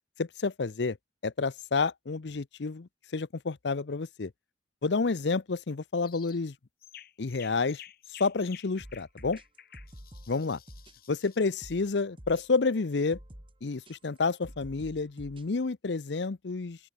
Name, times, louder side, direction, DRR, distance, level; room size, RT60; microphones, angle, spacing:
voice 1, 0.2-1.0 1.2-4.3 4.8-6.5 7.2-7.8 8.2-9.4 10.3-10.6 11.1-13.2 13.6-16.8, left 4 dB, 70° left, 0.6 m, -29 dB
sound 1, 6.0-6.4 6.8-11.5, left 11 dB, 50° left, 7.8 m, -51 dB
sound 2, 8.8-15.5, equal, 30° right, 3.1 m, -49 dB
open air
head